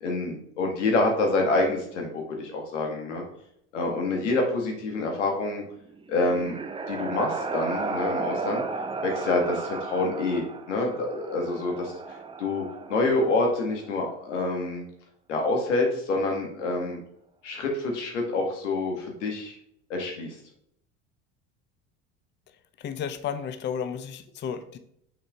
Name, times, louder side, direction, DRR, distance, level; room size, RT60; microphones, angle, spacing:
voice 1, 0.0-3.2 3.7-5.6 6.1-6.6 6.9-8.6 9.0-12.6 12.9-14.9 15.3-17.0 17.4-19.6 19.9-20.3, left 2 dB, 90° left, 2 dB, 1.6 m, -27 dB
sound 1, 5.9-13.8, right 4 dB, 15° right, 0.5 m, -34 dB
voice 2, 22.8-24.8, left 7 dB, 30° left, 11 dB, 0.5 m, -33 dB
6.1 x 4.8 x 3.5 m, 0.72 s
hypercardioid pair, 80°, 35 cm